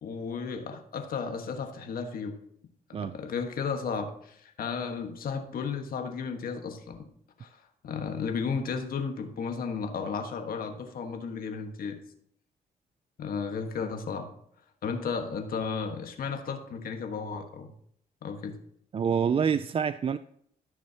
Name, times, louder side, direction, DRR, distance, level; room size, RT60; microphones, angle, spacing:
voice 1, 0.0-2.4 2.9-7.1 7.4-7.6 7.8-12.0 13.2-14.3 14.8-17.7 18.2-18.6, left 5 dB, 70° left, 5 dB, 1.4 m, -34 dB
voice 2, 18.9-20.2, right 7 dB, 35° right, 13 dB, 0.4 m, -26 dB
14.5 x 6.3 x 2.8 m, 0.68 s
cardioid pair, 85°, 16 cm